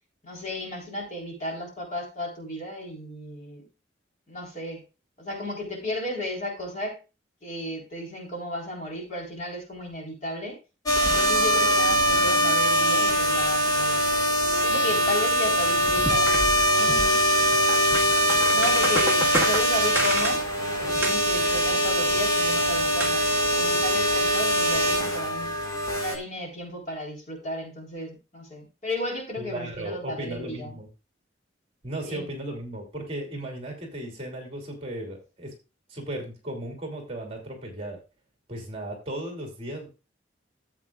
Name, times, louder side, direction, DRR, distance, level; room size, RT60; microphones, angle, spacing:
voice 1, 0.2-3.7 4.3-4.8 5.2-7.0 7.4-10.6 11.0-14.0 14.6-16.3 16.7-17.2 18.5-20.4 20.8-23.2 23.5-25.5 25.9-30.7 32.0-32.3, left 1 dB, 40° left, -1 dB, 3.9 m, -34 dB
sound 1, 10.9-26.2, equal, 20° left, 1.7 m, -22 dB
sound 2, 15.6-23.5, right 1 dB, 10° right, 1.6 m, -32 dB
voice 2, 29.4-30.9 31.8-35.5 35.9-38.0 38.5-39.9, right 1 dB, 30° right, 2 dB, 2.6 m, -35 dB
13.5 x 7.9 x 2.4 m, 0.30 s
head